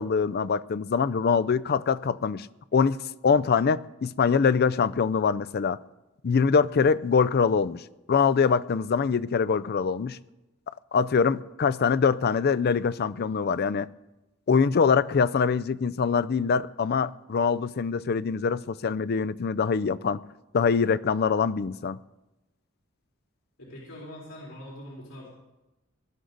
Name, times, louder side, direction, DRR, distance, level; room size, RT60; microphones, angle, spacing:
voice 1, 0.0-2.5 2.7-5.8 6.2-7.8 8.1-10.2 10.9-13.9 14.5-20.2 20.5-22.0, left 5 dB, 50° left, 0.4 m, -24 dB
voice 2, 23.6-25.3, left 1 dB, 80° left, 4.1 m, -43 dB
19.5 x 11.5 x 3.9 m
head